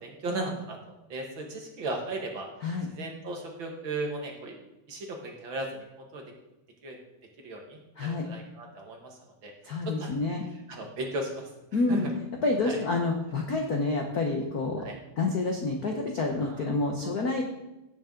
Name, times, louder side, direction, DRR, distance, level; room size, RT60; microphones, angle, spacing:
voice 1, 0.0-2.5 2.9-4.5 4.9-6.2 6.8-7.0 7.4-9.5 9.9-10.2 10.7-11.5 11.9-12.0 12.6-12.8 14.8-15.0 16.4-16.7 17.0-17.1, right 2 dB, 45° right, 1 dB, 2.0 m, -36 dB
voice 2, 8.0-8.3 9.6-10.4 11.7-12.1 12.4-14.9 15.2-17.4, left 3 dB, 80° left, 2 dB, 0.8 m, -28 dB
17.0 x 7.2 x 3.8 m, 0.95 s
omnidirectional pair, 3.4 m